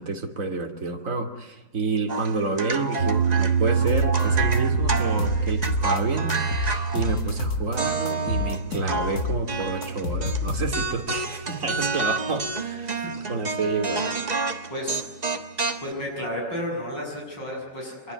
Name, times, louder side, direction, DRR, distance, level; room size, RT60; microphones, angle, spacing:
voice 1, 0.0-14.1, right 3 dB, 45° right, 3 dB, 3.0 m, -29 dB
sound 1, 2.1-7.4 7.8-10.4 10.7-15.9, right 3 dB, 25° right, 1.3 m, -30 dB
sound 2, 3.0-13.2, right 6 dB, 70° right, 2.2 m, -28 dB
sound 3, 3.9-6.0 6.3-7.8 8.1-11.0, left 4 dB, 55° left, 2.0 m, -29 dB
voice 2, 15.8-18.1, left 1 dB, 75° left, -2 dB, 8.1 m, -32 dB
25.5 x 23.0 x 9.7 m, 1.2 s
omnidirectional pair, 2.0 m